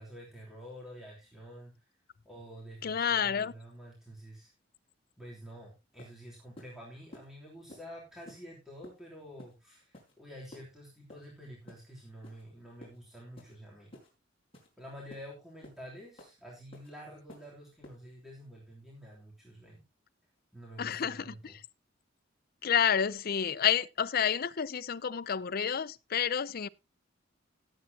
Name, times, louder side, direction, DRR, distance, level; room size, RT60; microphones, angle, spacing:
voice 1, 0.0-1.9 2.2-4.5 5.2-14.0 14.8-19.8 20.5-21.6, equal, ahead, 3.2 m, -49 dB
voice 2, 2.8-3.5 20.8-21.3 22.6-26.7, left 8 dB, 50° left, 0.5 m, -29 dB
sound 1, 5.5-5.6 6.0-6.1 6.6-6.7 7.1-7.3 7.7-7.8 8.3-8.4 8.8-9.0 9.4-9.5 9.9-10.1 10.5-10.7 11.1-11.3 11.7-11.8 12.2-12.4 12.8-13.0 13.4-13.5 13.9-14.1 14.5-14.7 15.1-15.2 15.6-15.8 16.2-16.3 16.7-16.9 17.3-17.5 17.8-18.0, left 1 dB, 30° left, 4.9 m, -51 dB
18.0 x 8.2 x 2.8 m
head